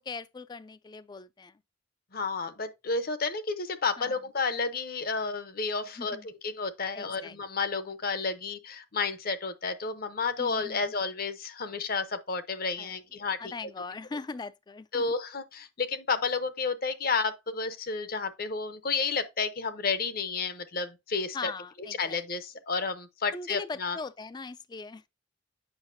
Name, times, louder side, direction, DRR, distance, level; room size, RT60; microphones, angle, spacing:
voice 1, 0.0-1.5 4.0-4.2 6.0-6.3 6.9-7.4 10.4-10.9 12.8-12.9 13.4-15.1 21.3-22.2 23.3-25.1, left 4 dB, 20° left, 0.3 m, -40 dB
voice 2, 2.1-13.5 14.9-21.5 22.0-24.0, left 4 dB, 50° left, 0.7 m, -31 dB
8.0 x 5.6 x 2.6 m
head